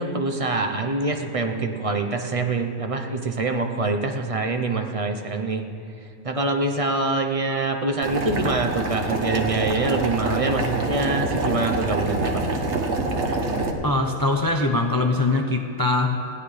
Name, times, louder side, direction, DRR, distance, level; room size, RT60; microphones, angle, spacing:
voice 1, 0.0-5.6 6.2-12.7, right 3 dB, 30° right, 4 dB, 0.8 m, -25 dB
Boiling, 8.0-13.7, right 3 dB, 55° right, 1.4 m, -26 dB
voice 2, 13.8-16.3, left 2 dB, 25° left, 3 dB, 0.4 m, -22 dB
20.0 x 16.5 x 3.4 m, 2.6 s
omnidirectional pair, 1.5 m